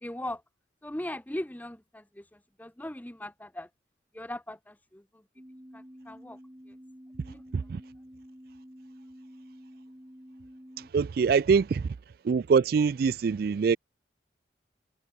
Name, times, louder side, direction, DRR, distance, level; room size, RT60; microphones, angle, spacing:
voice 1, 0.0-0.4 0.8-3.7 4.1-5.2 5.7-6.4 6.7-6.8 7.3-7.4, left 1 dB, 10° left, 0.7 m, -39 dB
sound 1, 5.4-10.9, equal, 15° right, 2.7 m, -49 dB
voice 2, 10.8-11.8 12.2-13.8, right 5 dB, 55° right, 0.3 m, -24 dB
head